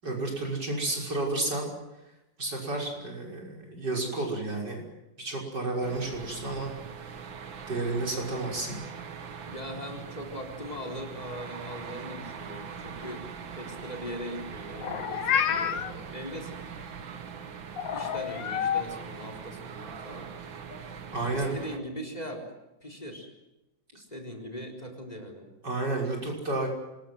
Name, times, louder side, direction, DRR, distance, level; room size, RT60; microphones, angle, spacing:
voice 1, 0.0-1.7 2.4-4.8 5.2-6.7 7.7-8.8 21.1-21.5 25.6-26.7, right 2 dB, 60° right, -1 dB, 6.7 m, -31 dB
sound 1, 5.8-21.8, right 6 dB, 75° right, 2.3 m, -42 dB
voice 2, 9.5-13.3 13.6-16.8 17.8-20.3 21.3-22.4 22.8-23.3 23.9-25.5, equal, 20° left, 4 dB, 4.3 m, -40 dB
Meow, 14.8-15.9 17.8-18.8, left 8 dB, 75° left, 1.9 m, -28 dB
25.5 x 21.5 x 7.8 m, 0.95 s
omnidirectional pair, 2.1 m